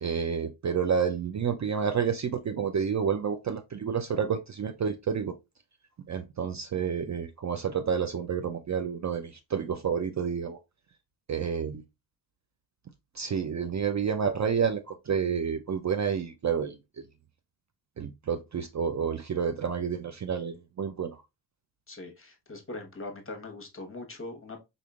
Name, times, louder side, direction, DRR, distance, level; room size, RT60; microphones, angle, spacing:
voice 1, 0.0-5.3 6.1-10.6 11.3-11.8 13.2-16.7 18.0-21.1, right 7 dB, 40° right, 0.4 m, -29 dB
voice 2, 21.9-24.6, left 2 dB, 30° left, 1.0 m, -41 dB
3.6 x 3.6 x 2.3 m
cardioid pair, 55°, 45 cm